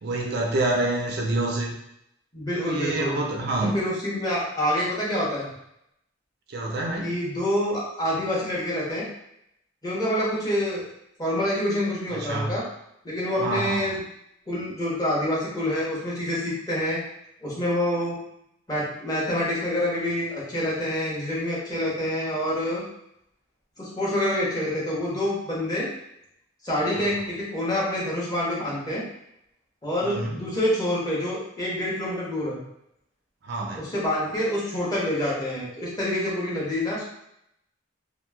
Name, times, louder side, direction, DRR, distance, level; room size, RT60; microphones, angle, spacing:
voice 1, 0.0-1.7 2.5-3.8 6.5-7.1 12.2-12.6 13.4-14.0 27.0-27.1 30.0-30.4 33.4-33.9, right 2 dB, 55° right, 0 dB, 0.4 m, -27 dB
voice 2, 2.3-3.2 3.7-5.5 7.0-9.1 9.8-10.8 11.2-12.6 13.0-14.0 14.5-17.0 17.4-18.2 18.7-22.8 23.8-25.9 26.6-29.0 29.8-32.6 33.7-37.0, left 1 dB, 20° left, -6 dB, 0.8 m, -27 dB
2.9 x 2.4 x 2.3 m, 0.78 s
head